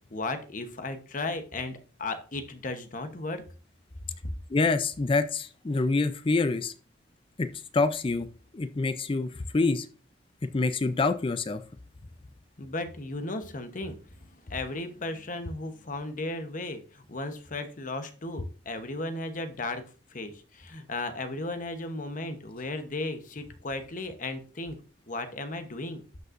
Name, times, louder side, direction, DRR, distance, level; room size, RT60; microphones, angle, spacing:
voice 1, 0.1-3.4 12.6-19.8 20.1-24.8 25.1-26.0, left 2 dB, 45° left, 9 dB, 0.9 m, -35 dB
voice 2, 4.5-6.7 7.4-7.5 7.7-8.3 8.5-9.9 10.5-11.6, left 3 dB, 30° left, 11 dB, 0.4 m, -26 dB
12.0 x 5.4 x 2.5 m, 0.38 s
head